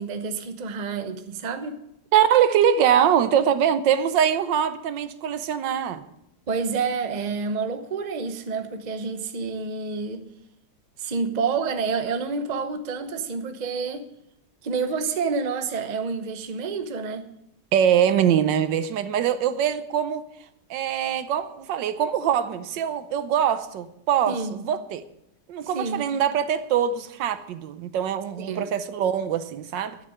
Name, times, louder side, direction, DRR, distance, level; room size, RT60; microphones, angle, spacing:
voice 1, 0.0-1.7 6.5-10.2 11.0-14.0 14.6-17.3 24.3-24.6 25.7-26.1 28.4-28.7, right 5 dB, 35° right, 0.8 m, -28 dB
voice 2, 2.1-6.0 17.7-20.3 20.7-25.0 25.5-30.0, right 9 dB, 85° right, 1.5 m, -23 dB
11.5 x 6.7 x 9.7 m
omnidirectional pair, 1.9 m